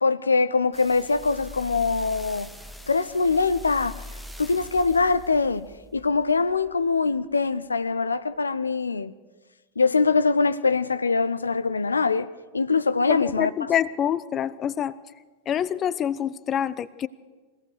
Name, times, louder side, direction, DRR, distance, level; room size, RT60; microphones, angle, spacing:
voice 1, 0.0-2.5 2.9-4.0 4.4-5.7 5.9-9.1 9.8-12.3 12.5-13.5, left 4 dB, 75° left, 0.6 m, -23 dB
sound 1, 0.7-7.2 7.8-7.9, left 1 dB, ahead, 1.3 m, -43 dB
voice 2, 13.1-15.0 15.5-17.1, left 9 dB, 30° left, 0.7 m, -26 dB
22.5 x 17.5 x 6.6 m
figure-of-eight pair, 90°, 0 cm